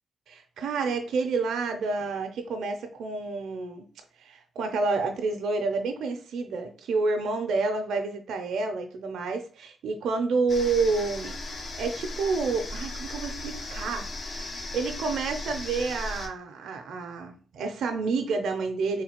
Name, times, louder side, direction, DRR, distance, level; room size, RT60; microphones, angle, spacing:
voice 1, 0.3-3.9 4.2-11.4 11.8-19.0, right 4 dB, 85° right, 0.4 m, -29 dB
sound 1, 10.5-16.3, left 2 dB, 60° left, 0.7 m, -37 dB
3.8 x 3.1 x 2.8 m
cardioid pair, 55°, 0 cm